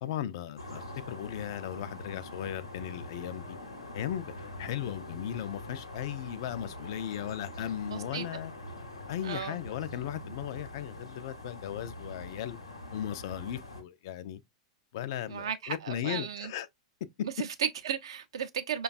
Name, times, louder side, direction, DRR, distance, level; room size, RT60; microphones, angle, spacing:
voice 1, 0.0-3.6 3.9-8.5 9.1-12.6 12.9-14.4 14.9-16.7, left 11 dB, 55° left, 0.3 m, -37 dB
sound 1, 0.6-13.8, left 1 dB, 85° left, 0.8 m, -44 dB
voice 2, 7.8-8.3 9.2-9.6 15.3-16.5 17.2-18.8, right 8 dB, 65° right, 0.5 m, -35 dB
5.0 x 2.2 x 2.4 m
figure-of-eight pair, 100°, 3 cm